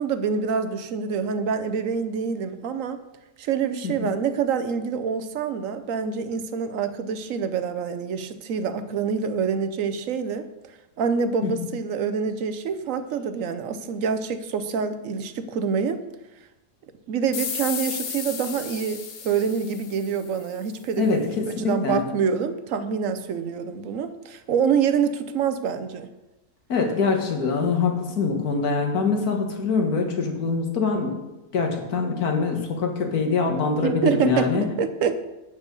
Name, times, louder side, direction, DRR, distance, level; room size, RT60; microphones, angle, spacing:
voice 1, 0.0-3.0 3.4-10.5 11.0-16.0 17.1-26.1 33.8-35.3, right 6 dB, 60° right, 10 dB, 1.0 m, -26 dB
sound 1, 17.3-20.6, left 6 dB, 50° left, 0.8 m, -34 dB
voice 2, 21.0-22.0 26.7-31.2 31.5-34.6, left 4 dB, 65° left, 3 dB, 1.9 m, -24 dB
8.5 x 5.3 x 6.8 m, 0.99 s
omnidirectional pair, 1.7 m